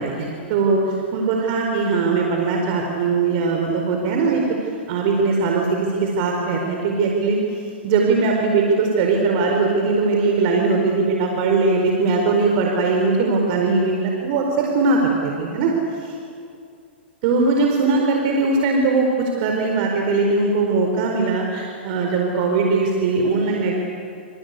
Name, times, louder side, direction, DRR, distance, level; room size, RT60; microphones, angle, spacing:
voice 1, 0.0-7.4 7.8-15.7 16.0-16.1 17.2-23.7, right 3 dB, 50° right, 1 dB, 4.6 m, -20 dB
28.0 x 25.5 x 8.4 m, 2.4 s
hypercardioid pair, 120°, 6 cm